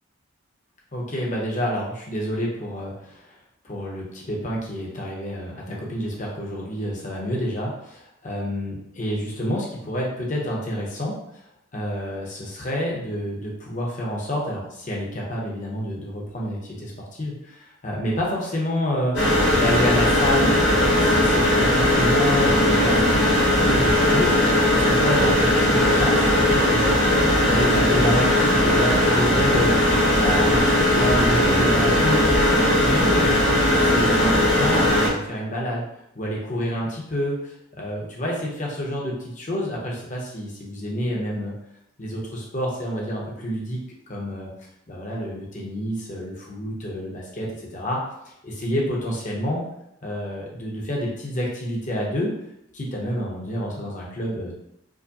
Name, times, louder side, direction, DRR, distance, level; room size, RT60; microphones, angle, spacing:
voice 1, 0.9-3.3 3.6-11.1 11.7-27.0 27.5-33.3 33.8-35.8 36.1-41.5 42.0-43.8 44.1-44.5 44.9-48.0 48.4-49.7 50.0-52.3 52.7-54.5, equal, 40° left, -3 dB, 0.9 m, -28 dB
sound 1, 19.1-35.1, left 1 dB, 60° left, 1.2 m, -18 dB
4.7 x 2.1 x 2.7 m, 0.80 s
head